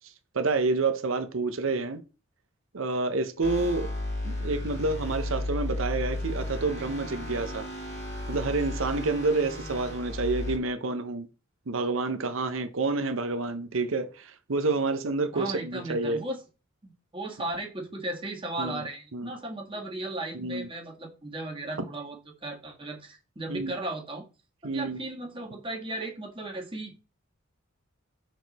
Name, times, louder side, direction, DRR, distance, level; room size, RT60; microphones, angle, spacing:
voice 1, 0.3-2.0 2.7-3.9 4.2-7.7 8.3-11.3 11.7-16.2 18.6-18.8 19.1-19.3 20.3-20.7 23.5-23.7 24.6-25.0, right 3 dB, 70° right, 0.8 m, -28 dB
sound 1, 3.4-10.6, left 1 dB, 55° left, 2.2 m, -34 dB
voice 2, 15.3-16.4 16.8-22.2 22.4-24.2 24.7-27.0, right 2 dB, 25° right, 1.5 m, -36 dB
6.3 x 4.7 x 4.1 m
head